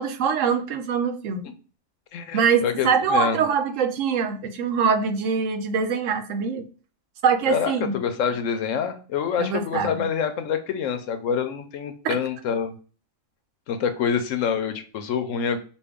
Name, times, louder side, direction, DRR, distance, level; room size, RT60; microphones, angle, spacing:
voice 1, 0.0-1.5 2.3-6.6 7.2-8.0 9.4-10.1 12.0-12.1, right 6 dB, 85° right, 7 dB, 1.0 m, -23 dB
voice 2, 2.1-3.4 7.5-12.7 13.7-15.6, left 7 dB, 85° left, 8 dB, 1.0 m, -26 dB
5.2 x 2.5 x 3.5 m, 0.39 s
omnidirectional pair, 1.3 m